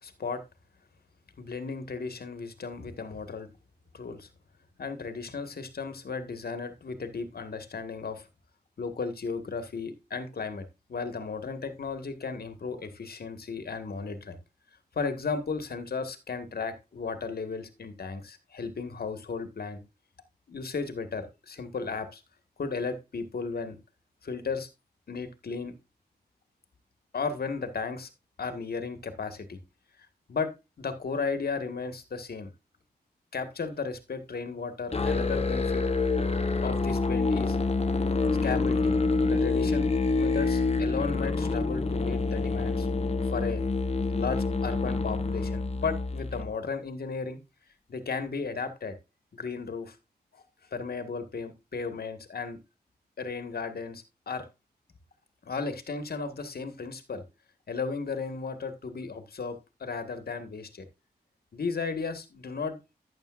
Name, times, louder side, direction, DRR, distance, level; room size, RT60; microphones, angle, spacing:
voice 1, 0.0-0.4 1.4-3.5 3.9-4.3 4.8-8.3 8.8-14.4 14.9-19.8 20.5-22.2 22.6-23.8 24.2-24.7 25.1-25.7 27.1-28.1 28.4-29.6 30.3-30.5 30.8-32.5 33.3-35.8 36.6-37.6 38.4-38.9 39.3-39.9 40.2-42.9 43.2-43.6 44.1-47.4 47.9-48.9 49.3-49.9 50.3-50.4 50.7-52.6 53.2-54.5 55.4-57.2 57.7-60.8 61.5-62.8, left 4 dB, 65° left, 9 dB, 1.7 m, -35 dB
Musical instrument, 34.9-46.5, left 3 dB, 35° left, 1.1 m, -27 dB
12.0 x 8.8 x 2.5 m, 0.25 s
cardioid pair, 60°, 17 cm